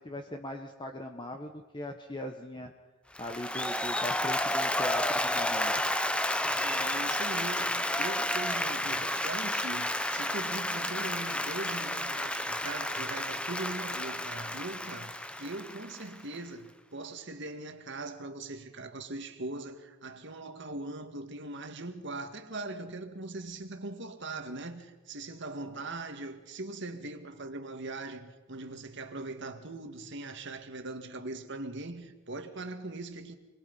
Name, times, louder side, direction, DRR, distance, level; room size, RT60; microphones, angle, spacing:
voice 1, 0.0-2.7 3.2-5.9 6.4-6.5, left 1 dB, 20° left, 1.2 m, -40 dB
Applause, 3.2-16.3, left 1 dB, 5° left, 0.8 m, -31 dB
voice 2, 6.5-33.4, right 2 dB, 55° right, 2.0 m, -40 dB
27.5 x 22.0 x 5.6 m
head